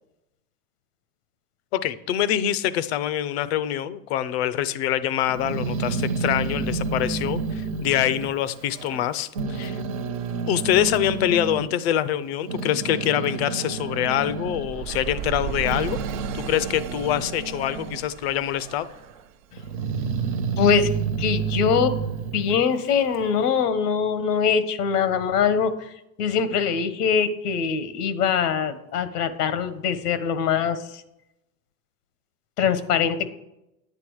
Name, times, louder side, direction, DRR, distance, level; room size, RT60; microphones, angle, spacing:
voice 1, 1.7-9.8 10.5-16.0 16.3-18.9, left 11 dB, 45° left, 15 dB, 0.6 m, -25 dB
Growling, 5.3-9.0 9.3-11.7 12.2-18.1 18.4-19.1 19.6-23.3, right 5 dB, 25° right, 0.4 m, -30 dB
sound 1, 14.4-19.4, right 10 dB, 60° right, 0.8 m, -35 dB
voice 2, 20.6-20.9 21.2-21.9 22.3-25.9 26.2-31.0 32.6-33.3, left 7 dB, 90° left, 11 dB, 1.4 m, -23 dB
11.0 x 8.9 x 4.8 m, 0.88 s
supercardioid pair, 175°, 46 cm